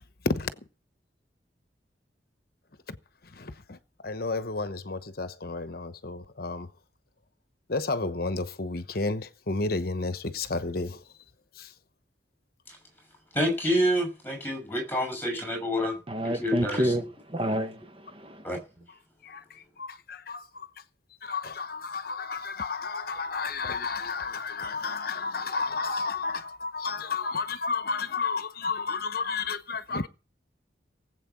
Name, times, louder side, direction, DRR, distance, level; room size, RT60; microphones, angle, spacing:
voice 1, 3.4-3.8 4.0-6.7 7.7-11.0 11.6-11.7 19.2-19.4 19.8-20.7 21.2-30.1, left 4 dB, 55° left, 1.0 m, -31 dB
voice 2, 13.3-15.9 16.2-16.9 18.4-18.6, equal, 15° left, 6.6 m, -28 dB
voice 3, 16.1-17.0 17.3-18.4, right 1 dB, 30° right, 1.5 m, -29 dB
19.0 x 8.2 x 6.1 m
head